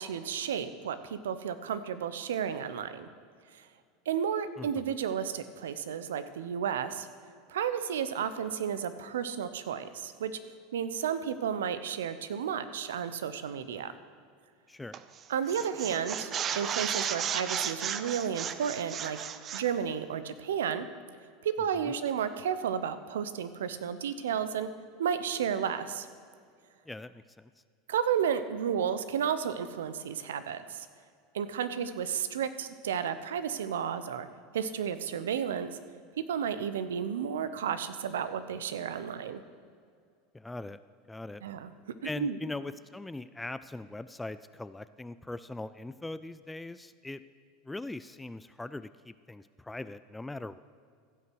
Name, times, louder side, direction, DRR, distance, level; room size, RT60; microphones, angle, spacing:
voice 1, 0.0-3.1 4.1-7.1 7.5-10.3 10.7-13.9 15.3-19.2 19.5-20.9 21.4-24.7 25.0-26.1 27.9-30.9 31.3-34.3 34.5-35.7 36.2-39.4 41.4-41.7 42.2-42.4, right 8 dB, 85° right, 12 dB, 0.7 m, -32 dB
voice 2, 4.6-4.9 14.7-15.0 21.8-21.9 26.9-27.5 40.3-40.8 41.1-41.4 42.0-47.2 47.6-50.6, left 2 dB, 10° left, 14 dB, 0.3 m, -41 dB
sound 1, 14.9-15.2 15.5-19.7, right 8 dB, 40° right, 0.6 m, -34 dB
15.5 x 5.8 x 6.1 m, 2.2 s
hypercardioid pair, 100°, 0 cm